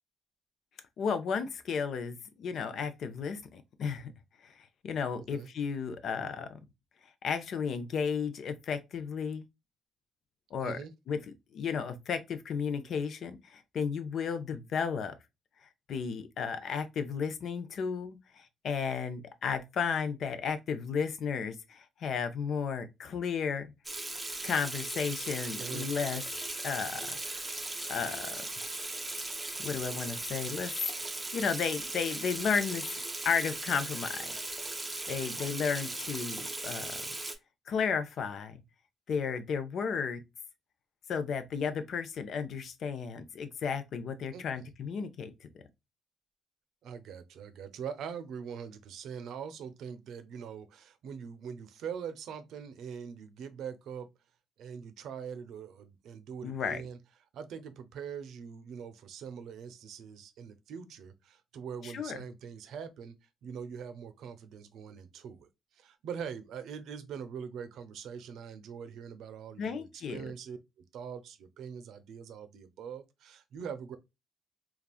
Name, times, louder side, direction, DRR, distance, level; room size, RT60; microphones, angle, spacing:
voice 1, 1.0-4.1 4.4-4.5 4.8-6.6 7.2-9.5 10.5-10.8 11.1-15.1 15.9-23.7 24.4-26.2 26.6-27.5 27.9-28.4 29.6-30.7 31.1-34.4 35.1-37.0 37.7-38.6 39.1-40.2 41.1-45.3 56.4-56.8 61.8-62.2 69.6-70.2, left 6 dB, 65° left, 0.6 m, -33 dB
Water tap faucet / Sink (filling or washing), 23.8-37.3, right 2 dB, 15° right, 0.6 m, -38 dB
voice 2, 25.6-25.9 44.3-44.7 46.8-54.1 54.6-57.0 57.3-63.2 63.4-70.6 70.9-74.0, right 7 dB, 75° right, 0.5 m, -43 dB
3.4 x 2.3 x 2.3 m
cardioid pair, 90°, 0 cm